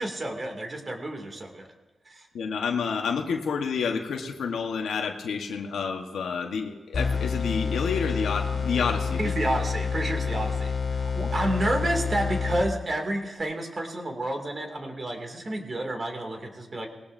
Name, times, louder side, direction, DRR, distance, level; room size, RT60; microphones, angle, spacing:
voice 1, 0.0-1.7 2.1-2.3 9.2-16.9, right 1 dB, 40° right, 3 dB, 2.4 m, -30 dB
voice 2, 2.3-9.3, left 6 dB, 85° left, 3 dB, 1.2 m, -29 dB
sound 1, 6.9-13.0, left 5 dB, 60° left, 2.7 m, -28 dB
20.0 x 17.5 x 2.7 m, 1.2 s
cardioid pair, 75°, 0 cm